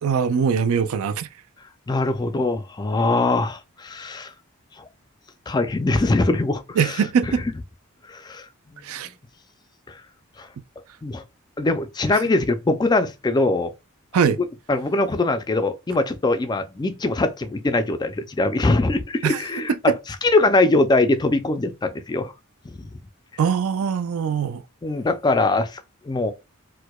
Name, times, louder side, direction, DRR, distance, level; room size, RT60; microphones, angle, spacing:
voice 1, 0.0-1.3 6.8-7.4 8.8-9.1 14.1-14.4 19.2-19.4 19.7-20.0 23.4-24.6, right 6 dB, 75° right, 0.4 m, -22 dB
voice 2, 1.9-4.3 5.5-7.0 7.3-7.4 8.1-8.5 9.9-10.0 10.4-10.5 11.0-11.2 11.6-13.7 14.7-19.9 20.2-22.3 22.8-22.9 24.8-25.8 26.1-26.3, left 2 dB, 20° left, 0.3 m, -22 dB
4.5 x 2.1 x 2.2 m
head